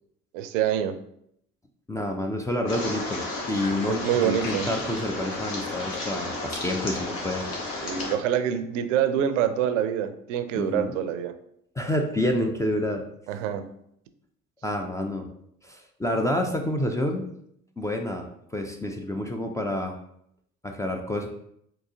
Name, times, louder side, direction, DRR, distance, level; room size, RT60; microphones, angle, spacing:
voice 1, 0.3-1.0 3.9-4.7 7.8-11.3 13.3-13.7, right 9 dB, 75° right, 10 dB, 0.5 m, -26 dB
voice 2, 1.9-3.2 3.5-7.4 10.6-10.9 11.8-13.0 14.6-15.3 15.6-17.3 17.8-18.2 18.5-20.0 20.6-21.3, left 1 dB, 10° left, 2 dB, 0.3 m, -28 dB
sound 1, 2.7-8.2, left 2 dB, 65° left, 1.0 m, -33 dB
3.8 x 2.8 x 2.7 m, 0.72 s
hypercardioid pair, 60°, 38 cm